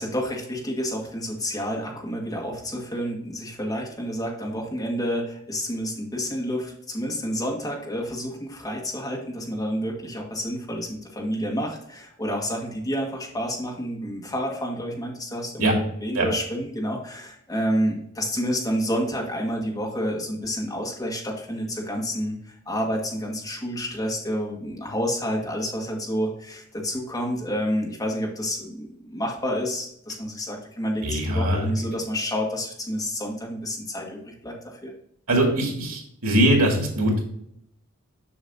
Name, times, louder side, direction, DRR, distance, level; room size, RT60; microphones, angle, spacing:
voice 1, 0.0-34.9, equal, 15° left, -1 dB, 1.6 m, -29 dB
voice 2, 31.0-31.7 35.3-37.2, right 1 dB, 90° right, 0 dB, 2.3 m, -21 dB
7.1 x 6.3 x 2.7 m, 0.72 s
head